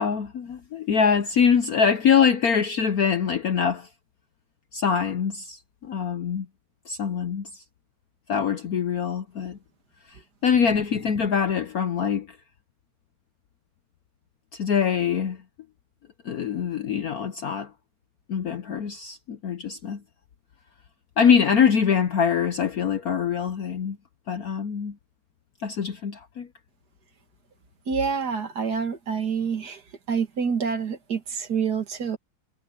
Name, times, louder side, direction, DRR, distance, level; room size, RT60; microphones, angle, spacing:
voice 1, 0.0-3.9 4.7-6.5 6.9-7.6 8.3-9.6 10.4-12.3 14.5-15.4 16.2-17.7 18.3-20.0 21.2-24.0 24.3-25.0 25.6-26.5, left 7 dB, 60° left, 1.0 m, -23 dB
voice 2, 27.9-29.8 30.1-32.2, right 6 dB, 50° right, 2.1 m, -27 dB
omnidirectional pair, 2.3 m